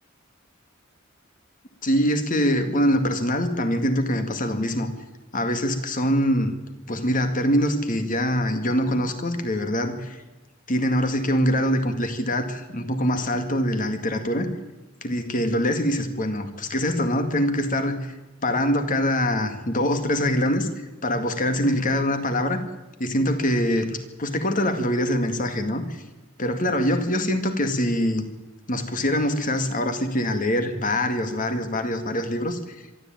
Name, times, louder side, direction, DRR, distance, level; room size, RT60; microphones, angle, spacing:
voice 1, 1.8-4.9 5.3-6.6 6.9-10.2 10.7-14.5 15.0-18.0 18.4-20.7 21.0-22.6 23.0-26.0 26.4-28.2 28.7-32.6, equal, 40° left, 8 dB, 2.1 m, -24 dB
23.5 x 13.0 x 9.0 m, 1.1 s
head